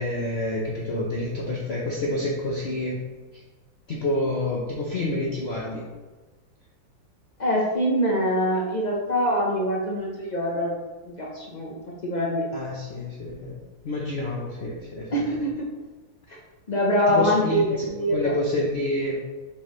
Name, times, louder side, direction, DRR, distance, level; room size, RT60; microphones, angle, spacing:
voice 1, 0.0-3.0 3.9-5.9 12.5-13.6 13.8-15.2 17.1-19.2, left 1 dB, 55° left, -3 dB, 0.7 m, -28 dB
voice 2, 7.4-10.7 11.1-12.4 15.1-15.4 16.7-18.3, equal, 90° left, -3 dB, 0.3 m, -24 dB
6.4 x 5.4 x 3.1 m, 1.2 s
omnidirectional pair, 2.1 m